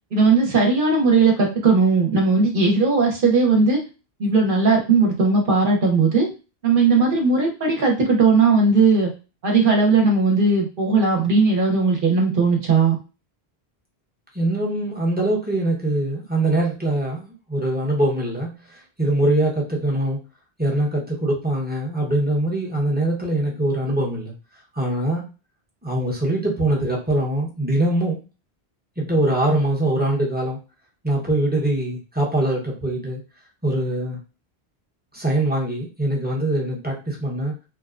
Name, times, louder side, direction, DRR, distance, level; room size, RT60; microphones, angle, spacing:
voice 1, 0.1-3.8 4.2-6.3 6.6-9.1 9.4-13.0, right 4 dB, 60° right, 0 dB, 0.9 m, -18 dB
voice 2, 14.3-20.2 20.6-24.3 24.7-25.3 25.8-28.2 29.0-30.6 31.0-33.2 33.6-34.2 35.1-37.5, right 1 dB, 10° right, -3 dB, 0.7 m, -23 dB
2.8 x 2.2 x 2.4 m, 0.31 s
omnidirectional pair, 1.1 m